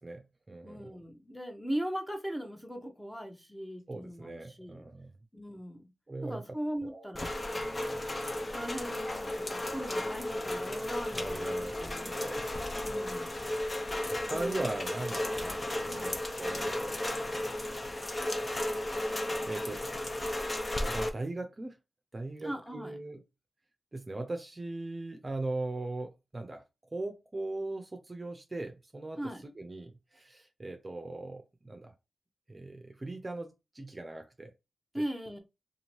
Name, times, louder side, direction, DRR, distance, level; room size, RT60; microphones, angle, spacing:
voice 1, 0.0-0.9 3.9-5.1 6.1-6.4 6.8-7.1 7.5-8.0 11.1-13.0 14.1-17.4 19.0-19.8 20.8-21.8 22.1-23.2 23.9-26.6 26.9-29.2 29.6-31.9 32.5-34.5 34.9-35.0, right 2 dB, 35° right, 0.6 m, -40 dB
voice 2, 0.6-4.8 5.3-5.9 6.3-7.3 8.5-12.5 12.8-13.4 14.3-14.7 15.9-16.2 22.4-23.0 29.2-29.5 34.9-35.4, equal, 5° left, 0.8 m, -39 dB
Rain, 7.1-21.1, left 1 dB, 35° left, 0.6 m, -34 dB
2.7 x 2.6 x 3.0 m
cardioid pair, 55°, 0 cm